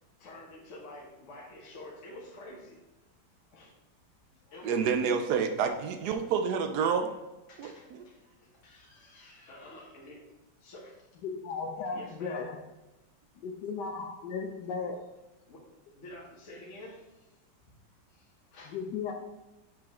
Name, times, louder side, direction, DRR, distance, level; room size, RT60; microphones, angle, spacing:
voice 1, 0.2-2.8 3.5-3.7 4.3-4.7 6.0-6.3 7.5-8.1 8.6-10.3 10.6-11.0 11.9-12.5 15.5-15.6 15.9-17.3 18.1-18.8, left 1 dB, 45° left, -4 dB, 1.3 m, -49 dB
voice 2, 4.6-7.1 7.6-7.7, right 6 dB, 70° right, 7 dB, 1.0 m, -28 dB
voice 3, 11.2-12.6 13.4-15.0 18.7-19.1, left 5 dB, 70° left, 4 dB, 1.1 m, -36 dB
6.9 x 5.1 x 3.0 m, 1.1 s
omnidirectional pair, 2.1 m